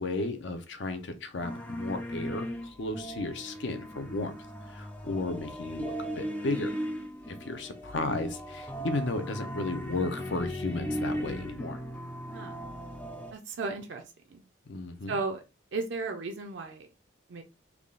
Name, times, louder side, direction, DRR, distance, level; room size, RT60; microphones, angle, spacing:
voice 1, 0.0-4.3 4.7-6.7 7.3-11.8 14.7-15.2, left 2 dB, 70° left, 9 dB, 0.6 m, -34 dB
sound 1, 1.4-13.3, equal, 5° left, 0.3 m, -37 dB
voice 2, 13.3-14.0 14.3-14.4 15.1-15.4 15.7-16.9 17.3-17.4, right 3 dB, 65° right, 4 dB, 0.5 m, -34 dB
3.5 x 2.3 x 3.7 m, 0.28 s
head